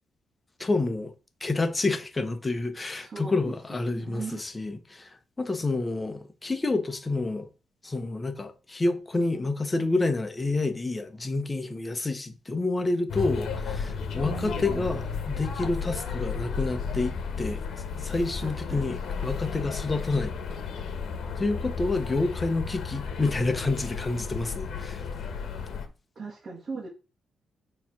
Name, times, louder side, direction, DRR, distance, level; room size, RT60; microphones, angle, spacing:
voice 1, 0.6-1.1 1.4-5.1 5.4-7.5 7.8-17.6 18.0-20.3 21.4-25.0, left 2 dB, 20° left, 1.1 m, -28 dB
voice 2, 2.8-3.4 3.7-4.4 14.2-14.9 18.4-18.9 26.2-26.9, right 4 dB, 40° right, 1.7 m, -39 dB
sound 1, 13.1-25.9, left 5 dB, 70° left, 1.2 m, -33 dB
7.0 x 3.3 x 6.0 m
cardioid pair, 105°, 0 cm